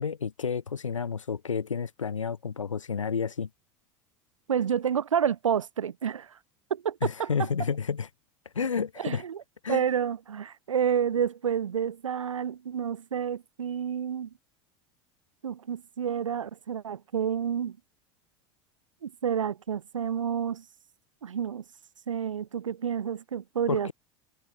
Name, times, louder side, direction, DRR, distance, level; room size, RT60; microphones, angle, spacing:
voice 1, 0.0-3.5 7.0-8.1 8.5-9.2 9.6-9.8 23.7-23.9, left 6 dB, 90° left, 2.5 m, -30 dB
voice 2, 4.5-6.4 6.7-7.3 9.0-9.4 9.7-14.3 15.4-17.8 19.0-20.6 21.2-21.6 22.1-23.9, right 8 dB, 85° right, 1.0 m, -29 dB
hypercardioid pair, 80°, 16 cm